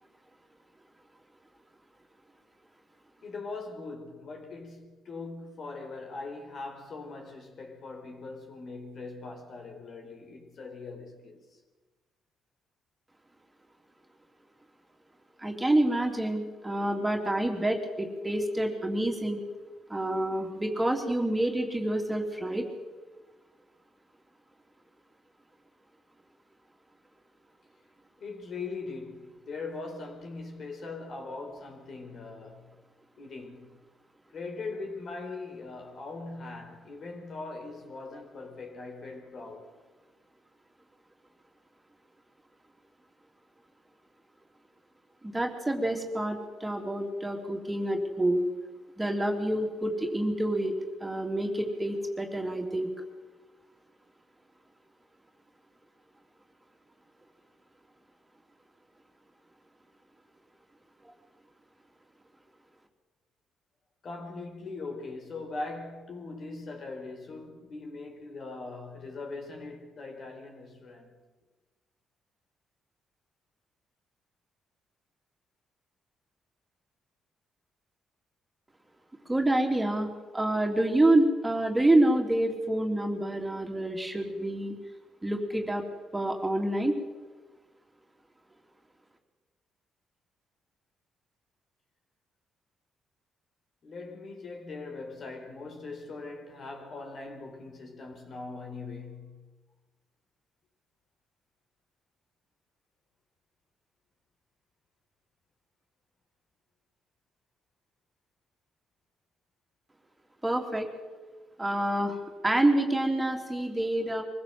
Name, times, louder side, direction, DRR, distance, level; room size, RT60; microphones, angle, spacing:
voice 1, 3.2-11.6 28.2-32.7 33.2-33.8 34.3-39.7 64.0-71.1 93.8-99.5, left 3 dB, 55° left, 4.1 m, -41 dB
voice 2, 15.4-19.4 19.9-22.7 45.2-48.4 49.0-50.7 51.0-52.9 79.3-80.1 80.3-84.7 85.2-85.8 86.1-86.9 110.4-110.9 111.6-114.2, right 1 dB, 15° right, 3.2 m, -27 dB
24.0 x 15.5 x 7.8 m
cardioid pair, 90°, 0 cm